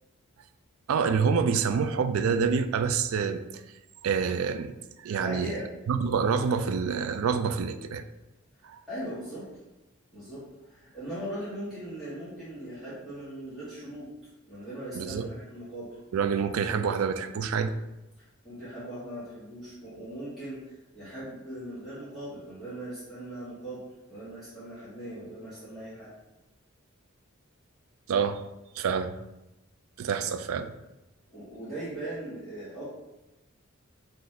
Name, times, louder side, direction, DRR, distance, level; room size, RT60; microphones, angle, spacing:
voice 1, 0.9-3.6 4.0-4.7 5.0-5.5 5.9-8.0 14.9-15.3 16.1-17.7 28.1-28.4 28.8-29.1 30.0-30.7, right 6 dB, 75° right, 10 dB, 0.3 m, -27 dB
voice 2, 5.2-5.6 8.9-9.5 10.1-14.1 14.4-16.0 18.4-23.8 24.1-26.1 31.3-32.9, right 1 dB, ahead, -13 dB, 1.3 m, -39 dB
3.9 x 2.6 x 4.3 m, 0.96 s
head